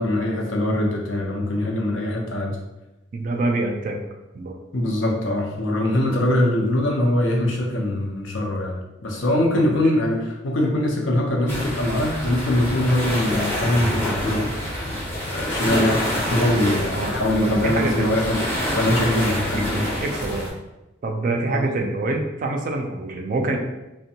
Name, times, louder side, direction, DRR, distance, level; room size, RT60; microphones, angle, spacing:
voice 1, 0.0-2.6 4.7-14.5 15.3-19.9 21.5-21.7, left 1 dB, 75° left, 0 dB, 0.6 m, -22 dB
voice 2, 3.1-4.0 4.3-4.5 9.6-9.8 16.9-17.1 17.4-18.1 19.5-20.5 21.0-23.6, right 2 dB, 45° right, 2 dB, 0.3 m, -26 dB
sound 1, 11.5-20.5, equal, 10° left, 0.6 m, -26 dB
2.6 x 2.1 x 2.7 m, 0.99 s
head